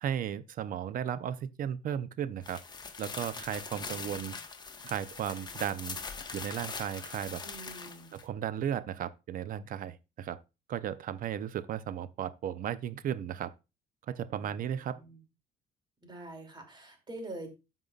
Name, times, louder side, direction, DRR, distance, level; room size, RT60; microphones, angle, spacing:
voice 1, 0.0-2.6 3.0-4.4 4.8-6.0 6.3-7.4 8.1-10.4 10.7-13.5 14.1-15.0, right 9 dB, 55° right, 0.6 m, -35 dB
sound 1, 2.4-8.2, left 5 dB, 25° left, 1.0 m, -42 dB
voice 2, 7.4-8.2 14.4-15.2 16.0-17.5, right 2 dB, 25° right, 2.7 m, -46 dB
13.5 x 5.5 x 2.4 m
cardioid pair, 110°, 17 cm